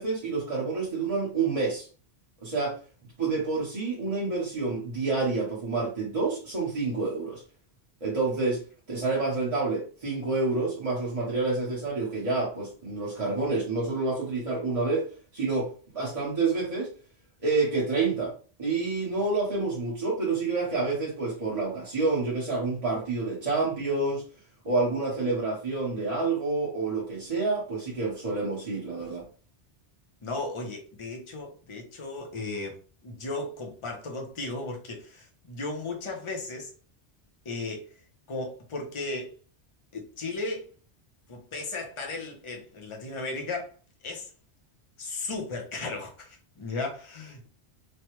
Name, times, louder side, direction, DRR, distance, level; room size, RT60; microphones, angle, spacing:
voice 1, 0.0-1.9 2.4-2.8 3.2-7.4 8.0-8.6 8.9-16.9 17.4-24.2 24.6-29.3, right 3 dB, 35° right, 0.9 m, -28 dB
voice 2, 30.2-36.7 37.4-37.9 38.3-39.4 39.9-40.7 41.3-43.7 44.0-44.3 45.0-47.5, left 3 dB, 30° left, 0.7 m, -35 dB
3.1 x 2.2 x 3.0 m
omnidirectional pair, 1.2 m